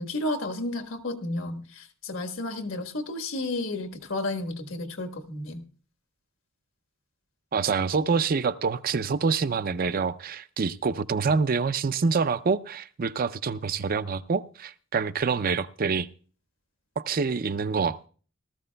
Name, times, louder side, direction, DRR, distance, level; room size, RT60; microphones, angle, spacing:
voice 1, 0.0-5.6, left 2 dB, 80° left, 1.4 m, -32 dB
voice 2, 7.5-16.1 17.0-18.1, right 5 dB, 45° right, 0.5 m, -26 dB
18.5 x 13.5 x 2.3 m
head